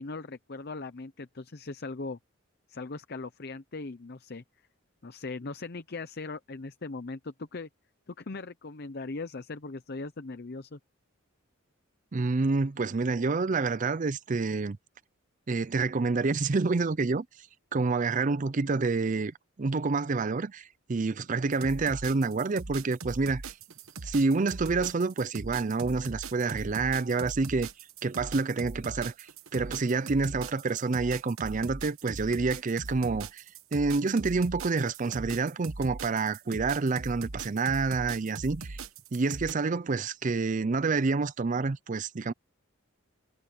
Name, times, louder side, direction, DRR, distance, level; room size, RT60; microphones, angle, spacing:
voice 1, 0.0-2.2 2.7-4.4 5.0-7.7 8.1-10.8, left 3 dB, 50° left, 0.7 m, -39 dB
voice 2, 12.1-14.8 15.5-17.3 17.7-23.5 24.0-27.7 28.0-33.4 33.7-38.8 39.1-42.3, right 4 dB, 40° right, 0.5 m, -28 dB
sound 1, 21.5-39.5, right 3 dB, 90° right, 1.3 m, -40 dB
head